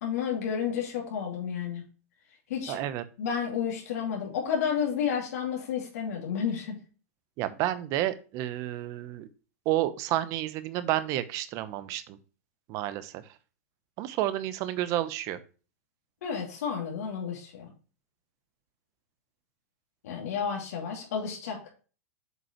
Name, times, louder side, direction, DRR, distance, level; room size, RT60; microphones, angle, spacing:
voice 1, 0.0-1.8 2.5-2.8 3.2-6.7 16.2-17.7 20.0-21.7, left 7 dB, 70° left, -1 dB, 2.6 m, -31 dB
voice 2, 2.7-3.0 7.4-9.3 9.7-12.2 12.7-13.2 14.0-15.4, right 14 dB, 40° right, 13 dB, 0.8 m, -30 dB
7.8 x 5.3 x 3.0 m, 0.36 s
supercardioid pair, 140°, 8 cm